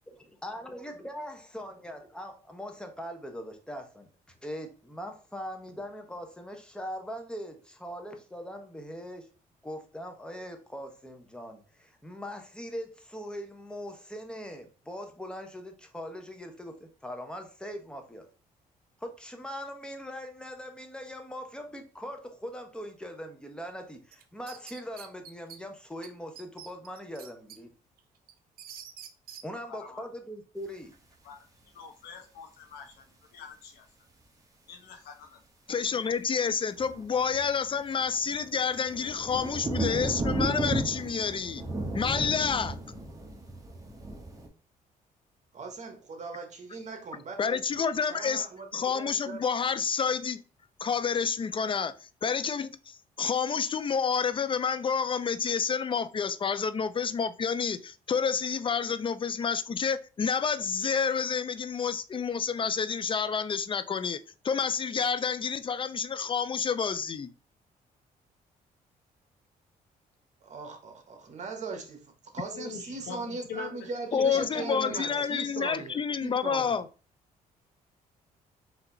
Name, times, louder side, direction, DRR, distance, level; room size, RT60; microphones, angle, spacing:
voice 1, 0.4-4.1 4.4-9.3 9.6-18.3 19.0-27.7 29.4-30.9, equal, 5° left, 1.0 m, -41 dB
sound 1, 24.1-25.6 26.0-26.1 26.4-27.6 28.0-29.4, right 9 dB, 70° right, 0.6 m, -46 dB
voice 2, 29.7-30.0 31.2-31.4 31.7-33.8 34.7-35.4 72.5-73.9 74.2-75.2, left 6 dB, 90° left, 1.0 m, -43 dB
voice 3, 35.7-41.6 41.9-42.8 47.4-48.5 48.7-50.4 50.8-64.2 64.4-67.3 74.1-76.9, left 6 dB, 35° left, 0.4 m, -29 dB
sound 2, 36.8-44.5, right 2 dB, 20° right, 1.1 m, -34 dB
voice 4, 45.5-47.6 48.1-48.7 48.9-49.4 70.4-72.0 72.3-76.8, right 4 dB, 50° right, 1.4 m, -39 dB
4.2 x 2.8 x 3.9 m
cardioid pair, 85°, 16 cm